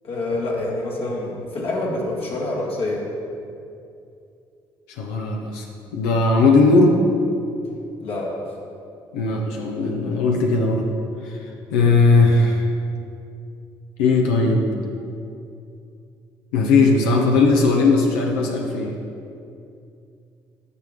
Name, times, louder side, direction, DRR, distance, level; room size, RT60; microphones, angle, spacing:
voice 1, 0.0-3.1 8.0-8.4, left 2 dB, 60° left, -3 dB, 1.6 m, -26 dB
voice 2, 5.0-5.6 5.9-7.0 9.1-10.9 11.2-11.4 11.7-12.6 14.0-14.7 16.5-18.9, left 3 dB, 85° left, 1 dB, 0.7 m, -18 dB
9.5 x 5.9 x 3.6 m, 2.6 s
hypercardioid pair, 55°, 11 cm